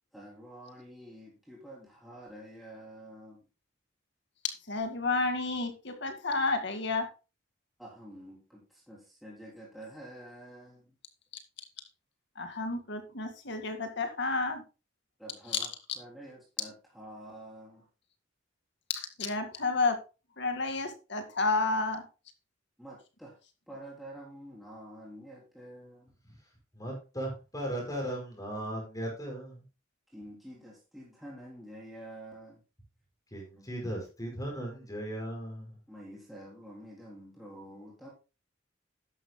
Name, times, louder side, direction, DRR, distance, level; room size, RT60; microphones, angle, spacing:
voice 1, 0.1-3.4 7.8-10.9 15.2-17.9 22.8-23.4 23.7-26.2 30.1-32.6 33.6-33.7 35.9-38.1, right 1 dB, ahead, -5 dB, 3.8 m, -48 dB
voice 2, 4.7-7.1 12.4-14.6 18.9-20.0 20.4-22.0, left 3 dB, 65° left, 7 dB, 2.1 m, -31 dB
voice 3, 26.7-29.6 33.3-35.8, right 1 dB, 20° left, 0 dB, 5.3 m, -37 dB
13.0 x 11.0 x 2.2 m, 0.30 s
head